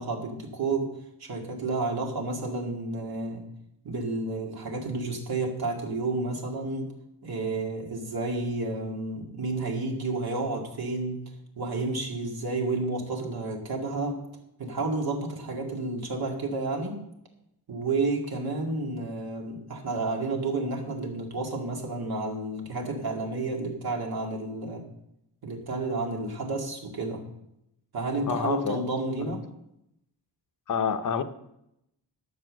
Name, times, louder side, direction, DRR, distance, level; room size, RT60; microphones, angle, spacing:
voice 1, 0.0-3.5 3.8-6.9 7.2-14.2 14.6-17.1 17.7-24.9 25.4-27.3 27.9-29.4, right 3 dB, 60° right, 1 dB, 2.4 m, -31 dB
voice 2, 28.3-28.9 29.2-29.4 30.7-31.2, left 6 dB, 45° left, 9 dB, 0.8 m, -28 dB
12.0 x 7.2 x 6.5 m, 0.80 s
wide cardioid pair, 170°, 42 cm